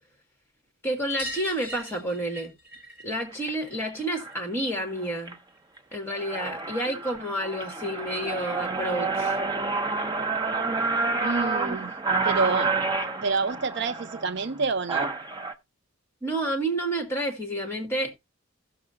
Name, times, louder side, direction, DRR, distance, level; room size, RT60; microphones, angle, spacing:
voice 1, 0.8-2.5 3.0-5.4 5.9-9.4 16.2-18.2, right 1 dB, 10° left, 1.9 m, -30 dB
sound 1, 1.1-6.2 6.5-7.6 9.0-9.1 9.3-9.4 9.7-9.8 11.1-11.2 11.5-11.6 11.9-12.0 13.2-13.3 14.1-14.2, equal, 30° left, 3.0 m, -44 dB
sound 2, 3.3-3.5 4.2-4.4 4.9-5.3 5.8-5.9 6.1-15.5, right 3 dB, 20° right, 0.7 m, -29 dB
voice 2, 11.2-11.9 12.2-12.7 13.2-15.1, right 4 dB, 55° right, 0.5 m, -28 dB
16.0 x 6.7 x 2.5 m
head